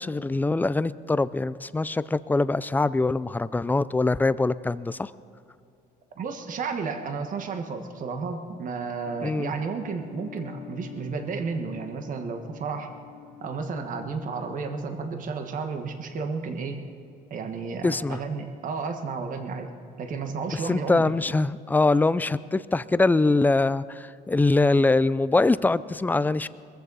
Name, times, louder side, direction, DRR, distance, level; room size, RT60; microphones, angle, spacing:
voice 1, 0.0-5.1 9.2-9.5 17.8-18.2 20.6-26.5, left 3 dB, 10° left, 17 dB, 0.4 m, -23 dB
voice 2, 6.2-12.9 13.4-16.8 17.3-19.7 20.0-21.1, right 5 dB, 50° right, 5 dB, 1.5 m, -32 dB
sound 1, 9.0-14.7, left 12 dB, 90° left, 2.8 m, -46 dB
22.0 x 14.5 x 4.1 m, 2.5 s
cardioid pair, 110°, 17 cm